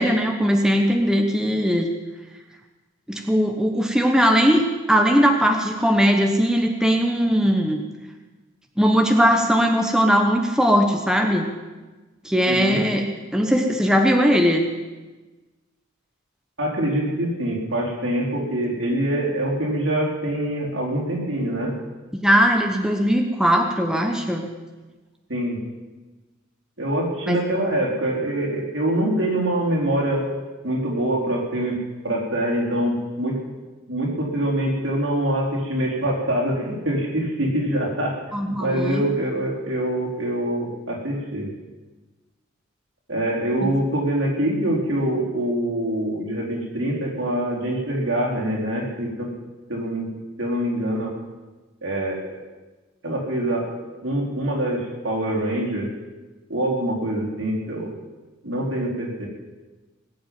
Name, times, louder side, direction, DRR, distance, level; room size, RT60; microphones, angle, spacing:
voice 1, 0.0-1.9 3.1-7.8 8.8-11.5 12.2-13.0 13.3-14.7 22.1-24.5 27.3-27.4 38.3-39.0 43.6-43.7, equal, 5° right, 2 dB, 1.0 m, -19 dB
voice 2, 12.5-12.8 16.6-21.7 25.3-25.6 26.8-30.2 30.6-31.8 32.0-33.4 33.9-38.1 38.4-41.5 43.1-49.3 49.7-50.1 50.4-51.1 51.8-52.4 53.0-53.7 54.0-55.9 56.5-58.0 58.4-59.3, right 1 dB, 65° right, -3 dB, 4.3 m, -24 dB
19.5 x 7.8 x 9.4 m, 1.2 s
head